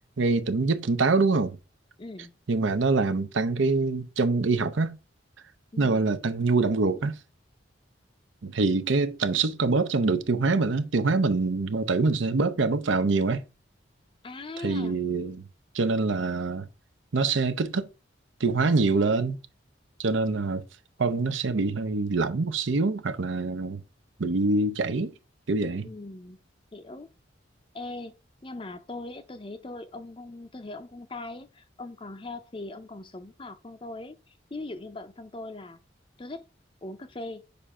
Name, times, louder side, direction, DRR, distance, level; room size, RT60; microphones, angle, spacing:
voice 1, 0.2-1.6 2.5-5.0 5.8-7.2 8.4-13.4 14.6-15.5 15.7-16.7 17.1-17.9 18.4-19.4 20.0-20.6 21.0-23.8 24.2-25.1 25.5-25.9, right 3 dB, 75° right, 0.7 m, -25 dB
voice 2, 2.0-2.3 5.7-6.0 14.2-14.9 25.8-26.4 26.7-27.1 27.7-28.1 28.4-34.2 34.5-35.8 36.2-36.4 36.8-37.4, left 2 dB, 25° left, 0.5 m, -40 dB
6.7 x 2.5 x 5.5 m
head